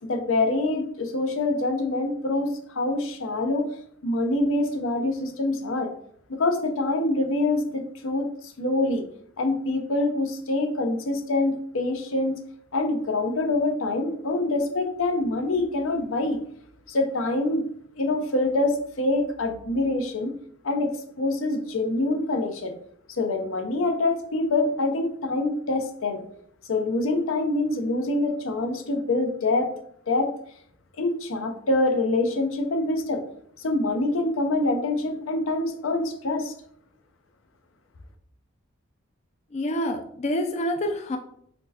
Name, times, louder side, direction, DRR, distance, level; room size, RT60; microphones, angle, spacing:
voice 1, 0.0-3.6 4.0-5.9 6.3-8.3 8.6-9.0 9.4-12.4 12.7-16.4 16.9-17.7 18.0-20.3 20.6-22.7 23.1-26.2 26.7-29.7 30.1-30.3 31.0-33.2 33.6-36.5, left 2 dB, 80° left, 5 dB, 0.6 m, -25 dB
voice 2, 39.5-41.2, left 1 dB, 35° left, 5 dB, 0.3 m, -27 dB
4.3 x 4.1 x 2.7 m, 0.68 s
head